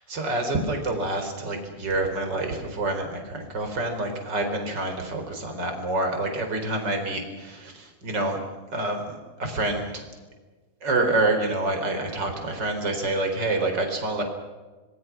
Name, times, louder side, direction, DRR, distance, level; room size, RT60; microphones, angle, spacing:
voice 1, 0.1-8.4 8.7-10.0 10.8-14.2, right 2 dB, 30° right, 4 dB, 4.5 m, -27 dB
26.5 x 21.0 x 6.1 m, 1.3 s
omnidirectional pair, 4.4 m